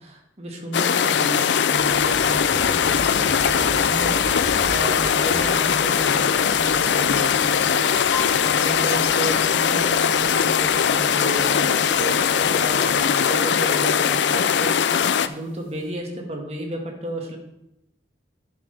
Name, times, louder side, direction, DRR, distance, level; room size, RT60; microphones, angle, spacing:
voice 1, 0.0-17.4, right 1 dB, 35° right, 1 dB, 1.7 m, -33 dB
sound 1, 0.7-15.3, left 7 dB, 85° left, 0.4 m, -20 dB
sound 2, 1.8-13.0, left 1 dB, 55° left, 1.2 m, -39 dB
sound 3, 8.1-15.9, left 6 dB, 25° left, 1.9 m, -42 dB
11.0 x 7.6 x 3.4 m, 0.85 s
head